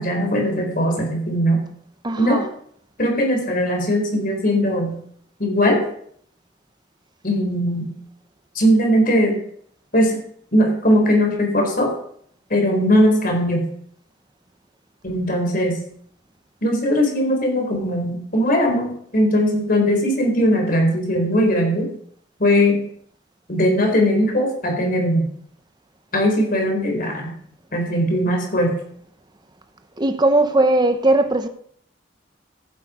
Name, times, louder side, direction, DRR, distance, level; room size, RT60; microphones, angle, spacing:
voice 1, 0.0-1.6 2.2-2.4 3.0-4.9 5.4-5.8 7.2-7.9 8.5-9.4 9.9-10.2 10.5-11.9 12.5-13.7 15.0-15.8 16.6-21.9 22.4-22.8 23.5-25.3 26.1-27.3 27.7-28.7, equal, 50° left, 3.9 m, -19 dB
voice 2, 2.0-2.4 30.0-31.5, right 2 dB, 25° right, 0.9 m, -18 dB
15.0 x 8.4 x 5.0 m
head